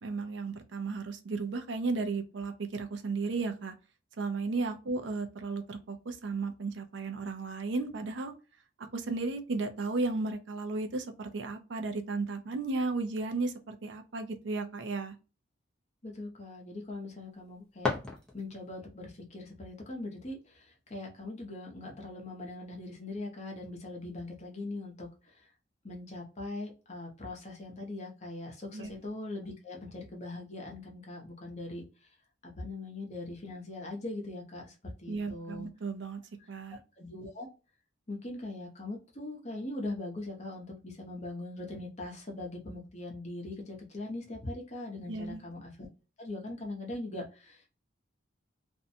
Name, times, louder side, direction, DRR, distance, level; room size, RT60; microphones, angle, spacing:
voice 1, 0.0-3.7 4.2-8.3 8.8-15.1 28.7-28.9 35.1-36.2 36.5-36.8 45.1-45.4, right 3 dB, 65° right, 7 dB, 0.5 m, -34 dB
voice 2, 16.0-17.9 18.3-25.5 25.8-32.1 32.4-35.7 36.4-36.5 37.0-37.5 38.1-45.9 46.2-47.7, left 2 dB, 35° left, 0 dB, 0.8 m, -41 dB
sound 1, 17.3-18.8, left 3 dB, 5° left, 0.5 m, -36 dB
2.6 x 2.2 x 2.6 m, 0.32 s
head